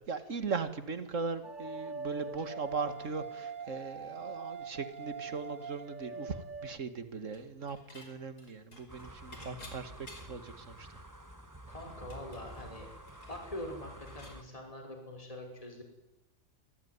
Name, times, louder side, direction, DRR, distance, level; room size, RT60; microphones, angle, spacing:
voice 1, 0.1-10.9, right 4 dB, 45° right, 10 dB, 2.1 m, -39 dB
sound 1, 1.4-6.8, right 4 dB, 30° right, 1.4 m, -43 dB
Dishes pots and pans / Chink clink, 7.3-8.1 8.4-10.5 10.9-11.0 11.3-14.4, left 2 dB, 60° left, 5.5 m, -54 dB
sound 2, 8.9-14.4, right 1 dB, 10° right, 1.8 m, -50 dB
voice 2, 9.4-9.8 11.7-12.9 13.3-15.8, left 1 dB, 20° left, 2 dB, 5.6 m, -44 dB
26.0 x 19.5 x 9.7 m, 0.92 s
omnidirectional pair, 1.9 m